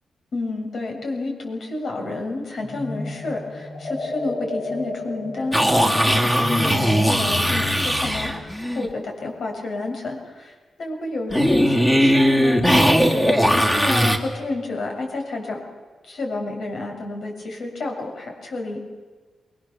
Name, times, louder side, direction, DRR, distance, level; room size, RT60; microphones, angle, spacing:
voice 1, 0.3-10.5 10.8-15.6 16.0-18.8, left 2 dB, 65° left, 1 dB, 7.2 m, -30 dB
sound 1, 2.6-8.0, left 2 dB, 50° left, 6.4 m, -33 dB
sound 2, 5.5-8.9 11.3-14.2, equal, 10° left, 2.7 m, -19 dB
28.0 x 22.5 x 7.3 m, 1.4 s
wide cardioid pair, 115°, 0 cm